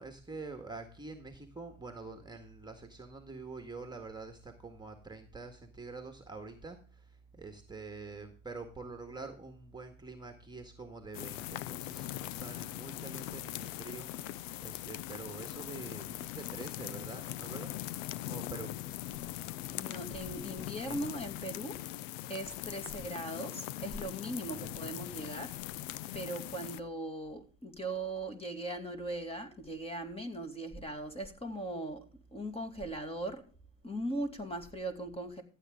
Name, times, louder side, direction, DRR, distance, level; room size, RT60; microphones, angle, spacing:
voice 1, 0.0-17.7 18.2-18.7 20.9-21.0 24.5-25.2, right 3 dB, 10° right, 5 dB, 1.8 m, -46 dB
sound 1, 11.1-26.8, left 15 dB, 80° left, 0.7 m, -41 dB
voice 2, 19.8-21.8 22.2-25.7 26.1-33.4 33.8-35.4, right 1 dB, 15° left, 6 dB, 2.5 m, -39 dB
15.0 x 8.3 x 3.8 m, 0.38 s
supercardioid pair, 90°, 38 cm